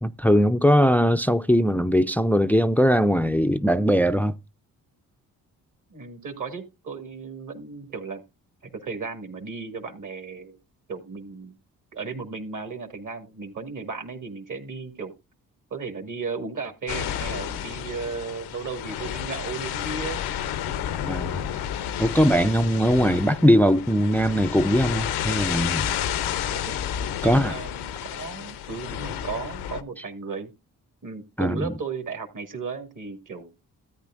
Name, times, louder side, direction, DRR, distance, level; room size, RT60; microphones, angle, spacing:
voice 1, 0.0-4.4 21.1-21.5 22.0-25.9 27.2-27.5 31.4-31.7, equal, 5° left, 0.5 m, -20 dB
voice 2, 5.9-8.2 8.8-10.6 10.9-11.6 11.9-15.1 15.7-20.3 26.5-26.7 27.2-30.5 31.0-33.5, right 4 dB, 50° right, 2.1 m, -35 dB
sound 1, 16.9-29.8, left 10 dB, 85° left, 0.8 m, -31 dB
13.5 x 8.9 x 2.5 m
supercardioid pair, 50°, 39 cm